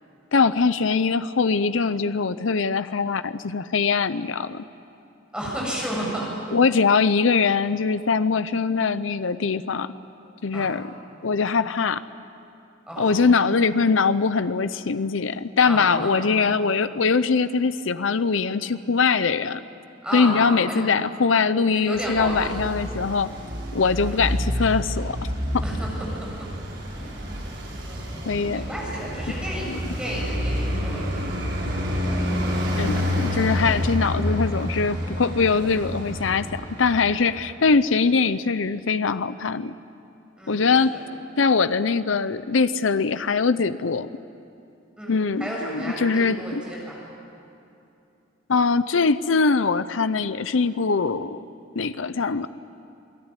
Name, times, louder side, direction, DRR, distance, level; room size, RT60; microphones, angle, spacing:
voice 1, 0.3-4.6 6.5-9.9 10.4-10.9 11.2-12.0 13.0-19.6 20.1-23.3 23.7-25.3 28.2-28.6 29.7-29.8 32.8-36.5 36.8-39.7 40.5-40.9 41.4-44.1 45.1-46.6 48.5-51.4 51.7-52.5, left 4 dB, 80° left, 13 dB, 0.7 m, -22 dB
voice 2, 5.3-6.3 10.5-10.7 12.9-13.1 15.6-16.1 20.0-20.8 21.7-22.6 23.9-24.1 25.6-25.9 27.9-28.0 28.2-29.7 30.0-31.3 40.4-41.0 45.0-47.0, right 1 dB, 5° right, -4 dB, 7.1 m, -32 dB
Traffic noise roadway noise, 21.9-37.4, equal, 65° right, 6.1 m, -28 dB
28.0 x 18.5 x 9.9 m, 2.7 s
head